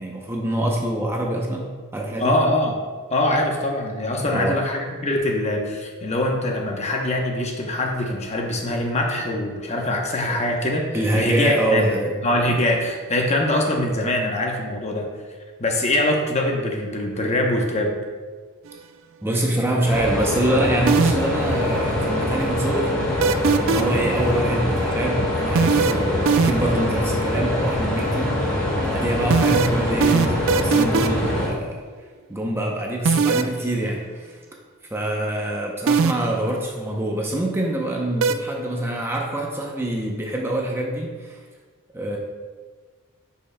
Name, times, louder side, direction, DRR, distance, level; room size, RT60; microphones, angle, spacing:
voice 1, 0.0-2.4 4.3-4.6 10.3-10.4 10.9-12.1 12.4-12.5 19.2-28.5 28.8-31.8 32.3-34.4 34.9-41.4 41.9-42.2, right 1 dB, 10° right, -1 dB, 0.6 m, -25 dB
voice 2, 2.2-2.8 3.1-10.8 11.1-11.9 12.2-15.1 15.6-17.9, left 1 dB, 30° left, 1 dB, 0.8 m, -23 dB
sound 1, 19.9-31.5, left 1 dB, 5° left, 1.9 m, -24 dB
sound 2, 20.9-21.4 23.2-24.0 25.6-26.8 29.3-31.3 33.1-33.6 35.9-36.4 38.2-38.3, right 5 dB, 65° right, 0.4 m, -19 dB
10.5 x 5.6 x 2.2 m, 1.5 s
head